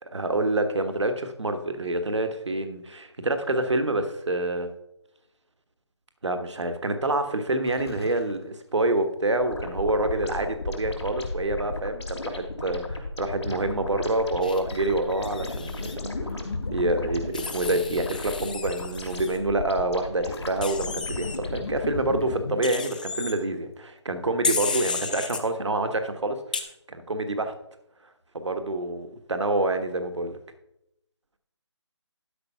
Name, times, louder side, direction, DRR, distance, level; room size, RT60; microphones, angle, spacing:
voice 1, 0.0-4.7 6.2-15.9 16.2-26.4 26.9-27.5 28.3-30.4, right 2 dB, 75° right, 7 dB, 1.4 m, -27 dB
sound 1, 7.6-8.3 8.9-9.0 12.0-12.5 14.4-15.1 15.4-18.1 18.4-18.8 20.2-23.0, left 3 dB, 60° left, 1.5 m, -37 dB
sound 2, 9.4-21.8, left 2 dB, 75° left, 3.4 m, -36 dB
Wild animals, 14.4-16.0 17.3-19.4 20.6-21.4 22.6-23.3 24.4-25.4 26.5-26.6, left 4 dB, 15° left, 0.5 m, -33 dB
12.0 x 5.4 x 5.7 m, 0.81 s
figure-of-eight pair, 170°, 15 cm